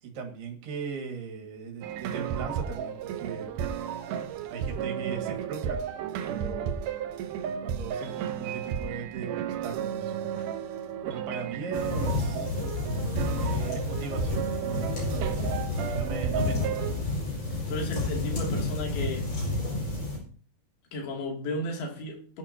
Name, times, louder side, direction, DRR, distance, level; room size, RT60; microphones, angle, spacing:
voice 1, 0.0-3.5 4.5-5.8 6.2-6.7 7.6-10.1 11.1-12.5 13.4-16.8, right 5 dB, 65° right, 3.9 m, -38 dB
sound 1, 1.8-17.0, right 8 dB, 80° right, 1.9 m, -33 dB
sound 2, 11.7-20.2, left 2 dB, 35° left, 6.3 m, -30 dB
voice 2, 17.5-19.3 20.9-22.4, left 1 dB, 60° left, 4.4 m, -34 dB
19.5 x 10.5 x 2.8 m
omnidirectional pair, 5.1 m